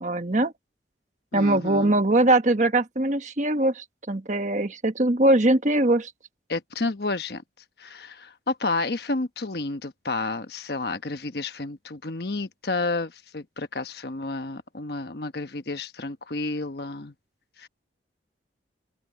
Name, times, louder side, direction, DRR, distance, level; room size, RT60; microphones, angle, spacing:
voice 1, 0.0-0.5 1.3-6.1, right 1 dB, 40° right, 1.2 m, -22 dB
voice 2, 1.3-2.0 6.5-7.4 7.8-17.1 17.6-17.7, left 3 dB, 60° left, 1.1 m, -30 dB
open air
head